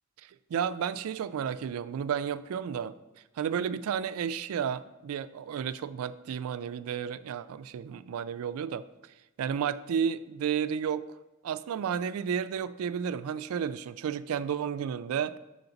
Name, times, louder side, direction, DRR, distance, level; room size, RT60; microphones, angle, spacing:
voice 1, 0.2-3.0 3.4-8.9 9.4-11.1 11.4-15.3, right 7 dB, 75° right, 13 dB, 0.3 m, -32 dB
5.7 x 3.9 x 5.8 m, 1.0 s
head